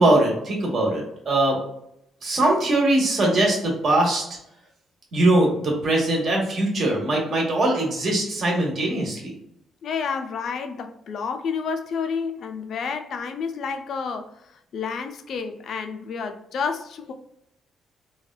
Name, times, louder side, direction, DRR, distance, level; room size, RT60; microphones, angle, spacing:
voice 1, 0.0-1.6 2.2-4.2 5.1-9.3, right 1 dB, 50° right, -1 dB, 1.1 m, -21 dB
voice 2, 9.8-17.1, left 5 dB, 65° left, 7 dB, 0.4 m, -30 dB
3.1 x 2.2 x 2.2 m, 0.77 s
cardioid pair, 90°, 0 cm